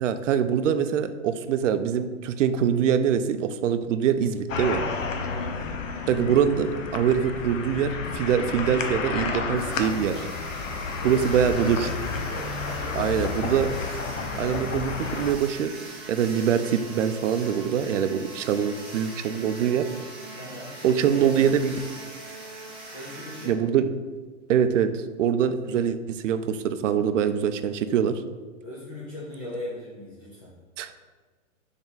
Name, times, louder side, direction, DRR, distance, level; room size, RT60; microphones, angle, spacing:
voice 1, 0.0-4.9 6.1-10.3 11.0-11.9 13.0-13.7 14.4-15.7 16.1-19.9 20.8-21.7 23.4-23.9 24.5-28.1 30.8-30.9, right 8 dB, 70° right, 11 dB, 0.5 m, -24 dB
sound 1, 4.5-15.3, left 4 dB, 80° left, 0.7 m, -31 dB
voice 2, 5.2-5.6 10.8-13.7 20.4-21.5 22.9-23.6 28.6-30.5, left 1 dB, 20° left, -7 dB, 0.4 m, -39 dB
sound 2, 9.6-23.5, right 2 dB, 15° right, 0.9 m, -42 dB
3.8 x 3.5 x 4.0 m, 1.4 s
hypercardioid pair, 145°, 38 cm